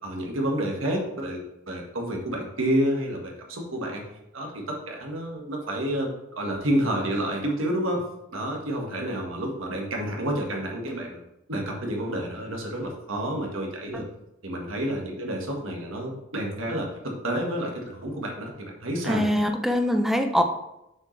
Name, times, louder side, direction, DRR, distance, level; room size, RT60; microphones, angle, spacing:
voice 1, 0.0-1.4 1.7-4.0 4.3-8.0 8.3-11.2 11.5-14.0 14.4-19.3, right 1 dB, 80° right, 0 dB, 1.7 m, -29 dB
voice 2, 19.1-20.4, equal, ahead, 5 dB, 0.6 m, -23 dB
7.2 x 6.4 x 3.3 m, 0.88 s
head